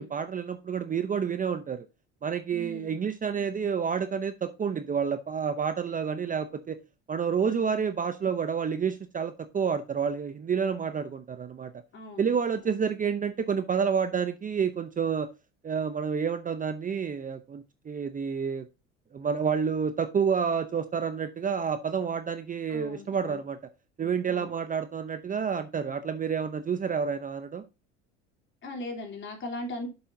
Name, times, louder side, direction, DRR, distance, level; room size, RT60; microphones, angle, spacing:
voice 1, 0.0-1.9 2.2-6.8 7.1-11.7 12.2-15.3 15.6-18.7 19.1-23.6 24.0-27.6, right 6 dB, 25° right, 0.7 m, -29 dB
voice 2, 2.5-3.0 7.4-7.8 11.9-12.2 22.7-23.4 24.3-24.5 28.6-29.9, left 1 dB, 35° left, 3.2 m, -39 dB
7.6 x 7.0 x 2.7 m
supercardioid pair, 95°, 33 cm